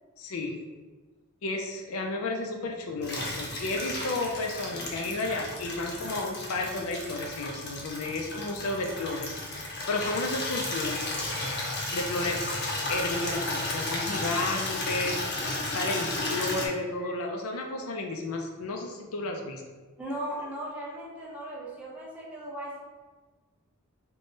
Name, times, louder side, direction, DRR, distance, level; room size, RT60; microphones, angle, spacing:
voice 1, 0.2-0.6 1.4-11.0 11.9-12.4 12.9-19.6, left 2 dB, 80° left, 2 dB, 0.5 m, -32 dB
Water tap faucet / Liquid, 3.0-16.7, left 2 dB, 50° left, 0.8 m, -33 dB
voice 2, 20.0-22.8, right 1 dB, 5° right, -6 dB, 0.8 m, -37 dB
3.6 x 2.3 x 3.9 m, 1.3 s
head